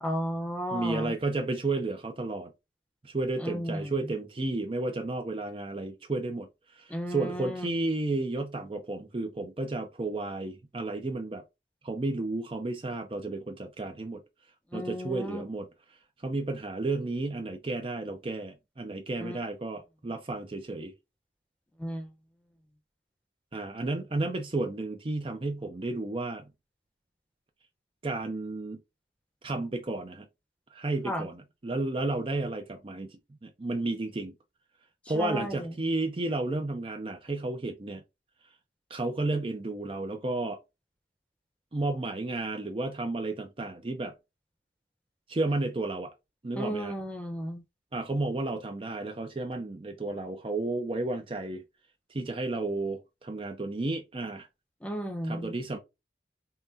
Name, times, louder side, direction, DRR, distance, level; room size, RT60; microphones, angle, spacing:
voice 1, 0.0-1.1 3.4-4.1 6.9-7.7 14.7-15.4 19.2-19.4 21.8-22.1 31.1-31.3 35.1-35.7 46.5-47.6 54.8-55.5, equal, 5° left, 0.7 m, -34 dB
voice 2, 0.7-2.5 3.0-6.5 6.7-11.4 11.8-14.2 14.7-15.7 16.2-20.9 23.5-26.5 28.0-28.8 29.4-30.3 30.7-34.4 35.1-38.0 38.9-40.6 41.7-44.1 45.3-46.1 46.4-46.9 47.9-51.6 52.1-54.5 55.2-55.8, right 2 dB, 30° right, 0.5 m, -32 dB
5.5 x 2.1 x 2.7 m
head